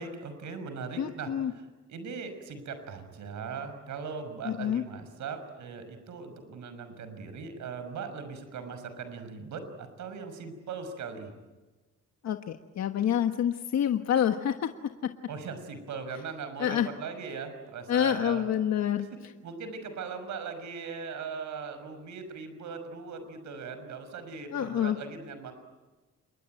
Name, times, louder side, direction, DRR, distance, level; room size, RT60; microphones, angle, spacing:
voice 1, 0.0-1.6 1.9-11.3 15.3-18.5 19.4-25.5, right 5 dB, 70° right, 9 dB, 6.0 m, -39 dB
voice 2, 1.0-1.5 4.4-4.8 12.2-14.7 15.0-15.1 16.6-16.9 17.9-19.3 24.5-25.0, left 9 dB, 65° left, 6 dB, 1.4 m, -27 dB
28.0 x 22.5 x 9.2 m, 1.2 s
cardioid pair, 90°, 30 cm